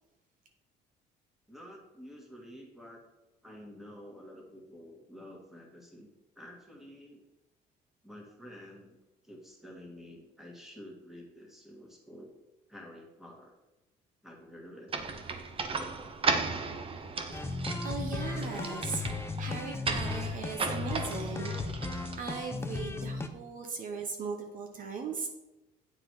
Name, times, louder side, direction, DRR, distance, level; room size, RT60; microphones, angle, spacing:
voice 1, 1.5-3.0 3.4-6.1 6.4-7.2 8.0-9.0 9.2-12.3 12.7-13.5 14.2-15.0, equal, ahead, 0 dB, 1.8 m, -49 dB
sound 1, 14.9-22.6, right 4 dB, 35° right, 0.7 m, -36 dB
voice 2, 17.1-21.9 22.2-25.3, right 5 dB, 55° right, 3 dB, 1.0 m, -39 dB
sound 2, 17.3-23.3, left 3 dB, 15° left, 0.6 m, -36 dB
9.1 x 3.8 x 4.7 m, 1.0 s
cardioid pair, 110°, 17 cm